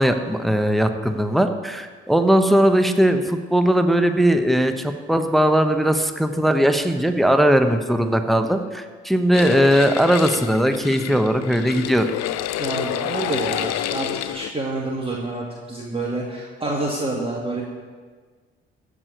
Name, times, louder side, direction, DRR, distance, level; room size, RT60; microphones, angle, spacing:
voice 1, 0.0-12.1, equal, ahead, 7 dB, 1.0 m, -19 dB
sound 1, 9.3-14.5, left 13 dB, 55° left, 0.6 m, -28 dB
voice 2, 12.6-17.6, right 2 dB, 15° right, -3 dB, 2.0 m, -28 dB
14.5 x 5.0 x 8.2 m, 1.5 s
figure-of-eight pair, 50°, 33 cm